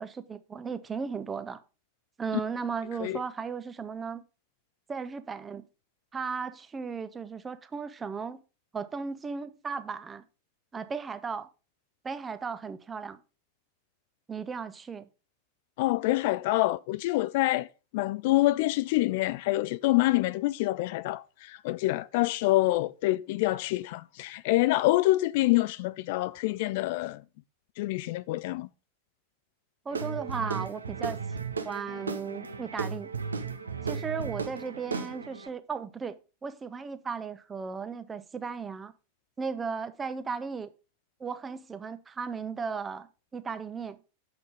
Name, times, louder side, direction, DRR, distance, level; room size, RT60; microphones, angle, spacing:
voice 1, 0.0-1.6 2.2-4.2 4.9-5.7 6.1-8.4 8.7-10.3 10.7-11.5 12.0-13.2 14.3-15.1 29.8-31.2 31.6-33.1 33.8-38.9 39.4-40.7 41.2-44.0, right 5 dB, 15° right, 0.8 m, -36 dB
voice 2, 15.8-17.7 17.9-27.2 27.8-28.7, left 18 dB, 50° left, 0.3 m, -26 dB
Guitar / Drum, 29.9-35.5, right 5 dB, 75° right, 1.0 m, -35 dB
7.7 x 5.9 x 5.1 m
figure-of-eight pair, 90°, 0 cm